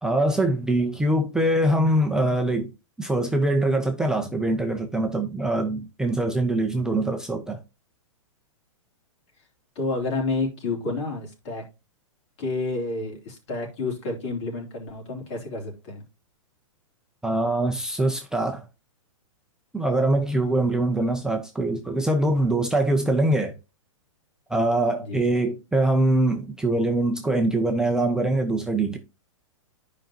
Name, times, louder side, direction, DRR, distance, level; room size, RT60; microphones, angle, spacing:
voice 1, 0.0-2.7 3.0-7.6 17.2-18.6 19.7-23.5 24.5-29.0, right 1 dB, 5° right, 0.6 m, -23 dB
voice 2, 9.7-11.6 12.4-16.0 25.0-25.2, left 3 dB, 55° left, 3.3 m, -30 dB
10.5 x 5.2 x 2.8 m
hypercardioid pair, 135°, 17 cm